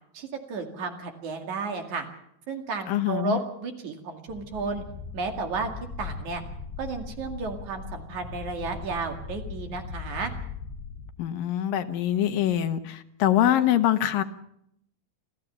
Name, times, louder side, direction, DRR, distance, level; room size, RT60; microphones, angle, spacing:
voice 1, 0.1-2.1 2.5-4.8 5.1-5.7 6.0-6.4 6.8-10.3, right 4 dB, 60° right, 4 dB, 3.5 m, -33 dB
voice 2, 2.9-3.4 11.2-14.2, left 11 dB, 75° left, 9 dB, 2.7 m, -24 dB
sound 1, 4.3-11.1, left 4 dB, 40° left, 5.1 m, -39 dB
27.0 x 14.5 x 7.0 m, 0.73 s
omnidirectional pair, 4.1 m